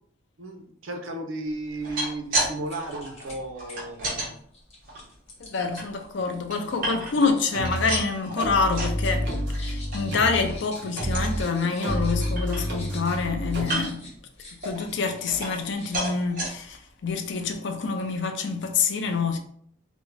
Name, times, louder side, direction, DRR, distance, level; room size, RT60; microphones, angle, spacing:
voice 1, 0.4-4.4 5.7-5.8 7.2-7.3, right 2 dB, 75° right, 0.6 m, -34 dB
sound 1, 1.7-2.5 2.8-4.3 4.8-5.8 6.3-7.3 7.6-9.0 9.3-9.6 9.9-10.0 10.4-10.6 11.0-11.4 11.8-11.9 12.2-13.0 13.6-14.1 14.6-15.7 15.9-16.5 17.1-17.2 17.5-17.6, right 1 dB, 45° right, 0.9 m, -32 dB
sound 2, 2.3-2.4 2.7-3.4 3.7-7.4 7.7-8.2 8.6-15.3 15.6-16.2, left 2 dB, 30° left, 0.9 m, -47 dB
voice 2, 5.4-14.0 14.6-19.4, left 4 dB, 60° left, 0.4 m, -27 dB
sound 3, 7.5-8.0 8.4-11.4 11.8-13.6, equal, 60° right, 1.2 m, -29 dB
3.5 x 2.0 x 3.2 m
head